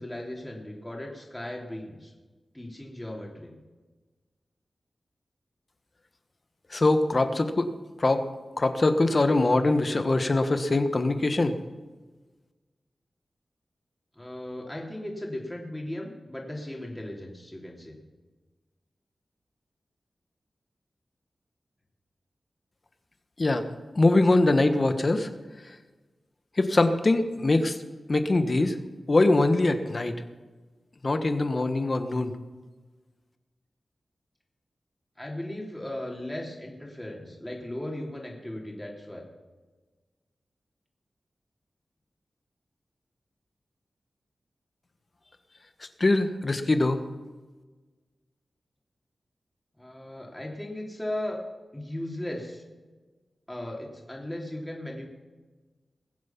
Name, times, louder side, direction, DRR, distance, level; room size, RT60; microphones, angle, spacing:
voice 1, 0.0-2.1 2.5-3.5 14.1-17.9 35.2-39.2 49.8-51.4 51.7-52.6 53.5-55.1, left 1 dB, 15° left, -2 dB, 3.2 m, -37 dB
voice 2, 6.7-7.7 8.0-8.2 8.6-11.5 23.4-23.7 23.9-25.3 26.6-27.8 28.1-28.8 29.1-30.2 31.0-32.3 46.0-47.0, left 2 dB, 45° left, 8 dB, 1.3 m, -23 dB
21.0 x 7.6 x 5.9 m, 1.3 s
cardioid pair, 55°, 0 cm